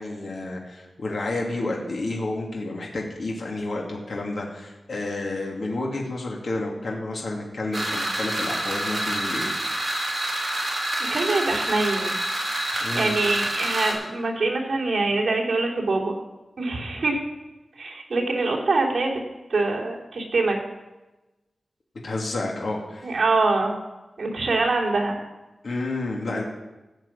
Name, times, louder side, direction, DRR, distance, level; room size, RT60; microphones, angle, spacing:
voice 1, 0.0-9.5 12.8-13.1 22.0-23.2 25.6-26.4, left 2 dB, 60° left, -1 dB, 2.3 m, -30 dB
sound 1, 7.7-13.9, right 1 dB, 40° right, 4.2 m, -27 dB
voice 2, 11.0-12.2 12.7-16.1 16.6-17.2 17.8-19.2 19.5-20.6 23.0-23.8 24.2-25.2, right 3 dB, 60° right, -4 dB, 3.4 m, -24 dB
15.5 x 6.2 x 8.6 m, 1.1 s
wide cardioid pair, 140°, 0 cm